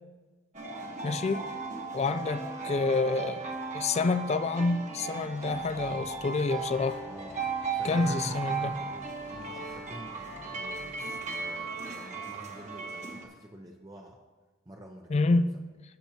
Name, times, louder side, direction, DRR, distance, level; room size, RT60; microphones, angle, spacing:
sound 1, 0.5-13.2, right 4 dB, 40° right, 1.1 m, -36 dB
voice 1, 1.0-1.4 1.9-3.5 3.7-7.0 7.8-8.8 15.1-15.5, left 3 dB, 35° left, 11 dB, 0.3 m, -28 dB
Accelerating revving vroom, 5.4-11.6, equal, 90° left, 3.0 m, -53 dB
voice 2, 7.0-7.4 7.7-14.2 14.7-15.2, right 1 dB, 20° right, 1 dB, 0.6 m, -47 dB
16.0 x 6.9 x 2.8 m, 1.3 s
head